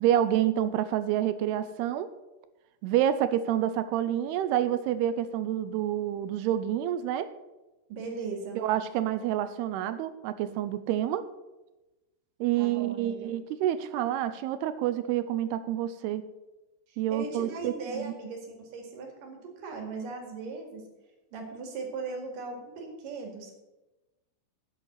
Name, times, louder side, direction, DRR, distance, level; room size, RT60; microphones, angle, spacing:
voice 1, 0.0-2.1 2.8-7.3 8.6-11.3 12.4-16.2 17.0-18.1, right 11 dB, 80° right, 13 dB, 2.5 m, -28 dB
voice 2, 7.9-8.6 12.6-13.3 16.9-20.8 21.3-23.5, right 4 dB, 60° right, 2 dB, 3.4 m, -38 dB
8.4 x 8.0 x 8.0 m, 1.0 s
omnidirectional pair, 4.8 m